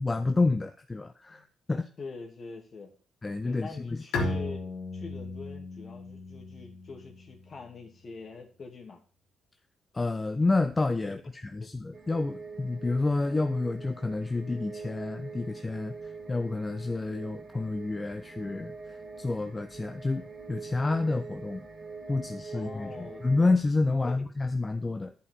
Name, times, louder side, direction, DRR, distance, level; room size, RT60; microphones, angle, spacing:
voice 1, 0.0-1.9 3.2-4.0 9.9-21.6 22.1-25.1, left 3 dB, 25° left, 7 dB, 0.8 m, -29 dB
voice 2, 2.0-2.9 3.4-4.6 4.9-9.0 11.6-11.7 22.5-23.2 24.0-24.1, left 4 dB, 45° left, 3 dB, 2.6 m, -44 dB
Bowed string instrument, 4.1-7.7, left 2 dB, 70° left, 2.0 m, -35 dB
sound 1, 11.9-23.6, right 4 dB, 45° right, 2.3 m, -44 dB
11.0 x 5.6 x 6.5 m, 0.41 s
hypercardioid pair, 45°, 0 cm